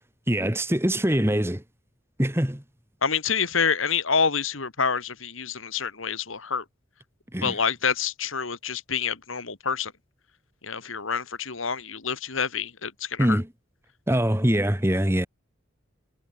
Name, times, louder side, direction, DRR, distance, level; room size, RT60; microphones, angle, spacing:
voice 1, 0.3-1.6 2.2-2.6 7.3-7.6 13.2-13.5 14.1-15.3, equal, 10° right, 1.6 m, -23 dB
voice 2, 3.0-6.6 7.4-9.9 10.6-13.4, left 6 dB, 80° left, 2.2 m, -27 dB
head